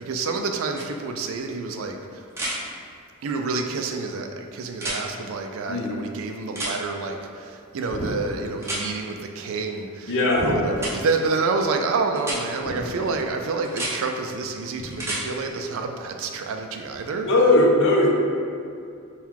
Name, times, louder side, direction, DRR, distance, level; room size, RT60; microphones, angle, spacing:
voice 1, 0.0-2.2 3.2-10.2 10.4-17.3, right 4 dB, 65° right, 4 dB, 0.4 m, -28 dB
sound 1, 0.8-0.9 2.3-2.6 4.7-5.0 6.5-6.8 8.6-8.8 10.8-10.9 12.2-12.4 13.6-13.9 14.9-15.2 17.3-17.4, right 1 dB, 10° right, 0.6 m, -29 dB
sound 2, 7.9-8.7 10.4-11.2 12.6-13.4 14.7-15.3 16.9-17.0, left 1 dB, 85° left, 1.0 m, -33 dB
voice 2, 10.1-10.5 17.2-18.1, left 2 dB, 60° left, -2 dB, 0.7 m, -18 dB
4.5 x 2.3 x 3.6 m, 2.4 s
head